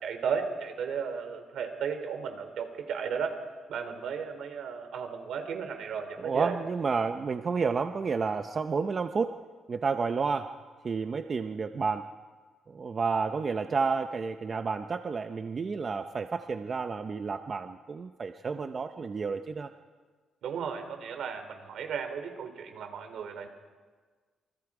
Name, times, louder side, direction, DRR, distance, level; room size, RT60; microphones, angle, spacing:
voice 1, 0.0-3.4 3.7-6.5 20.4-23.5, right 6 dB, 75° right, 7 dB, 3.4 m, -34 dB
voice 2, 6.2-9.4 9.7-10.5 10.8-12.1 12.7-19.7, right 5 dB, 35° right, 7 dB, 0.8 m, -30 dB
28.0 x 24.5 x 5.0 m, 1.4 s
cardioid pair, 135°, 0 cm